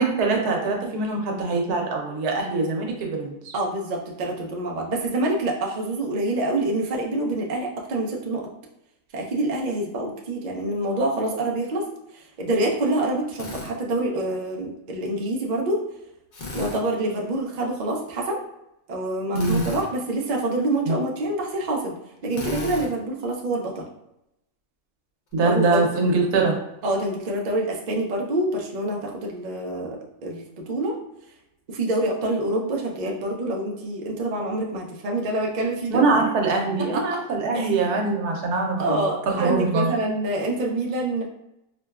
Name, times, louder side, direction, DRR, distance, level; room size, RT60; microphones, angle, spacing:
voice 1, 0.0-3.5 19.3-19.7 20.9-21.0 25.3-26.6 35.9-40.0, right 3 dB, 90° right, 1 dB, 1.2 m, -23 dB
voice 2, 3.5-8.4 9.1-11.8 12.1-15.8 16.5-18.4 18.9-21.9 22.2-23.8 25.4-25.8 26.8-30.9 31.7-36.0 36.9-37.0 37.5-37.7 38.8-41.2, right 1 dB, 70° right, -1 dB, 0.4 m, -26 dB
Drill, 13.3-13.7 16.3-16.8 19.3-19.9 22.3-22.9, left 2 dB, 55° left, 0.5 m, -34 dB
4.9 x 2.2 x 2.3 m, 0.85 s
omnidirectional pair, 1.6 m